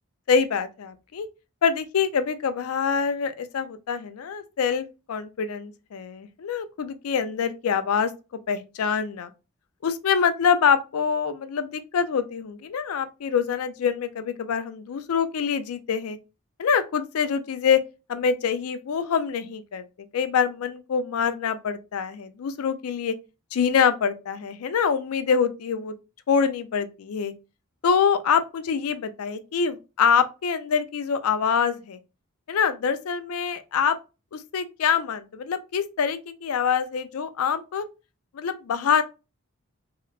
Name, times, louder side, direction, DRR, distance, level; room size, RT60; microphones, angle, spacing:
voice 1, 0.3-1.3 1.6-8.1 8.5-9.3 9.8-16.2 16.6-17.8 18.1-19.8 20.1-23.1 23.5-25.9 26.3-27.3 27.8-32.0 32.5-34.0 34.3-37.8 38.3-39.0, left 6 dB, 75° left, 0.4 m, -25 dB
3.2 x 2.8 x 2.3 m
head